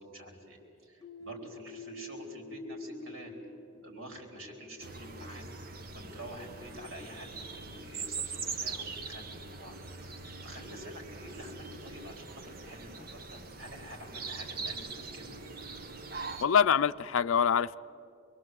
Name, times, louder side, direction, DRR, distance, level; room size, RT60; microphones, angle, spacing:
voice 1, 0.0-3.3 3.7-15.4, equal, 80° right, 2 dB, 4.4 m, -48 dB
sound 1, 1.0-4.7, left 1 dB, 15° left, 0.9 m, -46 dB
sound 2, 4.8-16.5, right 4 dB, 45° right, 1.1 m, -42 dB
voice 2, 16.4-17.7, left 7 dB, 85° left, 13 dB, 0.5 m, -25 dB
25.0 x 22.5 x 7.8 m, 2.7 s
head